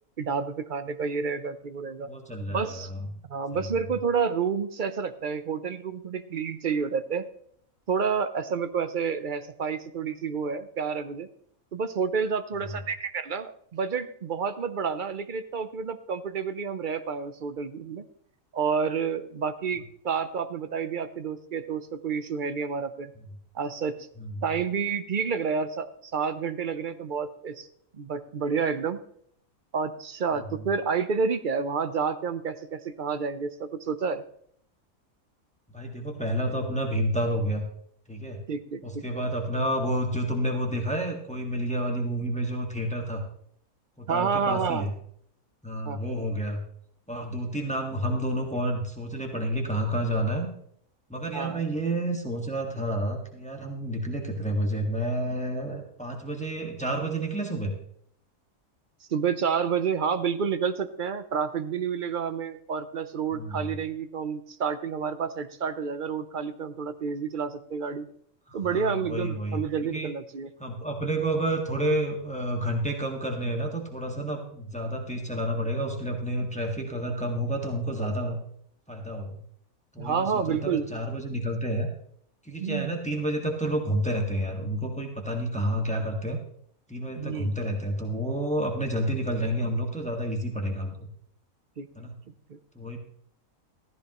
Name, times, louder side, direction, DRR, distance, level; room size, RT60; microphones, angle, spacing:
voice 1, 0.2-2.1 2.5-2.9 3.2-7.3 7.9-11.3 11.7-18.0 18.5-23.1 23.5-24.0 24.4-27.7 27.9-29.0 29.7-34.2 38.5-39.0 44.1-44.9 45.8-46.0 51.3-51.6 59.1-68.1 68.5-70.5 80.0-80.9 82.6-83.0 87.2-87.5 91.8-91.9 92.5-92.6, right 6 dB, 50° right, 11 dB, 0.7 m, -29 dB
voice 2, 2.0-3.1 3.5-3.8 12.7-12.8 24.2-24.4 30.3-30.6 35.7-37.7 38.1-38.4 38.8-43.2 44.0-44.9 45.6-46.6 47.1-50.5 51.1-57.7 63.3-63.7 68.5-69.6 69.9-70.1 70.6-78.4 78.9-79.4 79.9-81.9 82.4-86.4 86.9-90.9 91.9-92.1 92.7-93.0, right 1 dB, 5° left, 1 dB, 1.6 m, -30 dB
15.0 x 13.5 x 3.0 m, 0.67 s
omnidirectional pair, 1.5 m